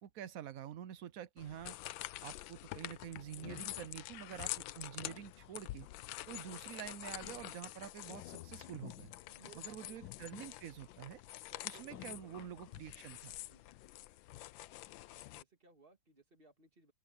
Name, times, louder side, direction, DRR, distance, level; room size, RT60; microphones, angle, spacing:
voice 1, 0.0-1.8 2.2-5.9 6.3-9.1 9.6-11.2 11.6-13.4, right 10 dB, 70° right, 0.8 m, -47 dB
sound 1, 1.4-15.4, left 16 dB, 80° left, 1.3 m, -47 dB
voice 2, 9.3-10.1 11.5-12.6 13.5-13.6 15.3-16.9, right 4 dB, 25° right, 2.6 m, -62 dB
open air
omnidirectional pair, 2.1 m